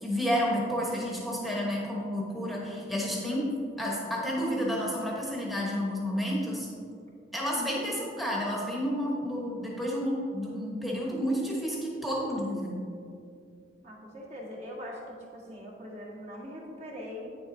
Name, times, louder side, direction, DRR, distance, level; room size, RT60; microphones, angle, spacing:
voice 1, 0.0-3.5 3.8-6.7 7.3-12.8, equal, ahead, -4 dB, 1.1 m, -30 dB
voice 2, 13.8-17.4, left 1 dB, 35° right, -5 dB, 1.6 m, -42 dB
9.1 x 7.0 x 2.7 m, 2.4 s
head